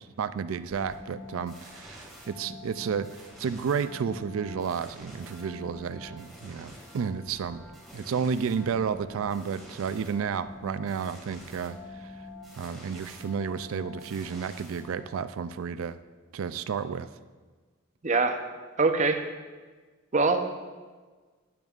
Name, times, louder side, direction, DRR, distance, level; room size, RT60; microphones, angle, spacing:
voice 1, 0.0-3.1 3.4-7.6 7.9-12.1 12.6-16.0 16.3-17.1, right 6 dB, 85° right, 13 dB, 0.4 m, -32 dB
sound 1, 0.7-15.3, left 2 dB, ahead, 2.1 m, -46 dB
voice 2, 18.0-18.4 18.8-19.2 20.1-20.6, right 3 dB, 35° right, 6 dB, 0.7 m, -23 dB
12.0 x 9.3 x 2.5 m, 1.4 s
head